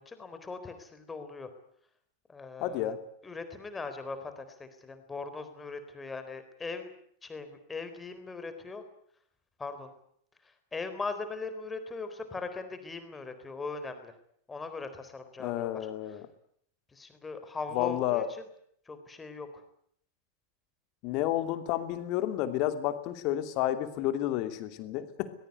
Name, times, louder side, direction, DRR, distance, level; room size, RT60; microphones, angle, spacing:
voice 1, 0.0-1.5 2.3-2.9 3.2-6.9 7.2-8.8 9.6-9.9 10.7-14.1 14.5-15.9 16.9-18.2 18.9-19.6, left 4 dB, 15° left, 9 dB, 3.9 m, -40 dB
voice 2, 2.6-3.0 15.4-16.3 17.7-18.3 21.0-25.3, left 13 dB, 40° left, 10 dB, 2.7 m, -31 dB
22.5 x 21.0 x 9.6 m, 0.68 s
figure-of-eight pair, 90°, 0 cm